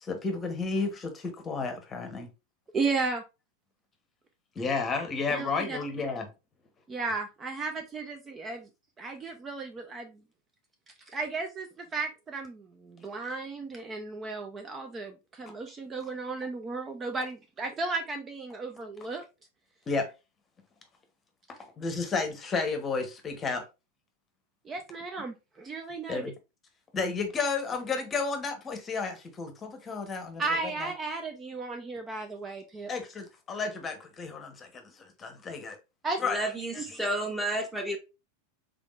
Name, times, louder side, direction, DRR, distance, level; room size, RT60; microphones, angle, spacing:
voice 1, 0.0-2.3 4.5-6.3 19.9-20.1 21.8-23.6 26.1-26.3 26.9-30.4 30.8-30.9 32.9-35.8 36.2-36.4 36.7-37.0, left 4 dB, 25° left, 0.9 m, -32 dB
voice 2, 2.7-3.2 5.3-5.8 6.9-8.7 9.0-10.2 11.1-19.2 24.6-26.2 30.4-32.9 36.0-36.2 36.8-36.9, right 3 dB, 25° right, 0.5 m, -34 dB
voice 3, 36.3-38.0, right 1 dB, 5° right, 1.1 m, -31 dB
3.6 x 3.5 x 2.4 m
hypercardioid pair, 95°, 0 cm